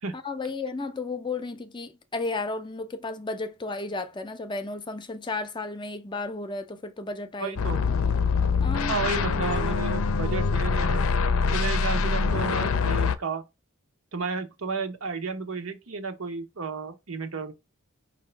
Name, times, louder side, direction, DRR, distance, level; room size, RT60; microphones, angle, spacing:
voice 1, 0.1-7.6 8.6-8.9, left 3 dB, 20° left, 0.5 m, -33 dB
voice 2, 7.4-7.8 8.9-11.0 11.5-13.4 14.1-17.5, right 4 dB, 80° right, 1.0 m, -32 dB
sound 1, 7.6-13.2, left 5 dB, 80° left, 0.5 m, -24 dB
4.9 x 2.7 x 3.3 m
head